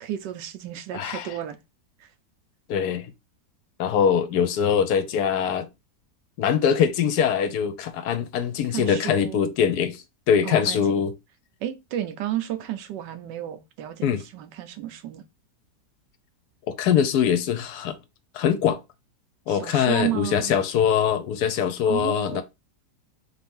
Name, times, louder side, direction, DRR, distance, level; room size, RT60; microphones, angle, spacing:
voice 1, 0.0-1.6 2.0-2.1 8.7-9.4 10.4-11.0 11.6-15.2 19.5-20.5 21.8-22.4, right 11 dB, 85° right, 1.3 m, -32 dB
voice 2, 0.9-1.3 2.7-3.1 3.8-5.7 6.4-11.1 14.0-14.2 16.7-18.0 18.3-18.8 19.5-22.4, left 8 dB, 70° left, 1.1 m, -23 dB
4.3 x 2.7 x 3.5 m
omnidirectional pair, 1.9 m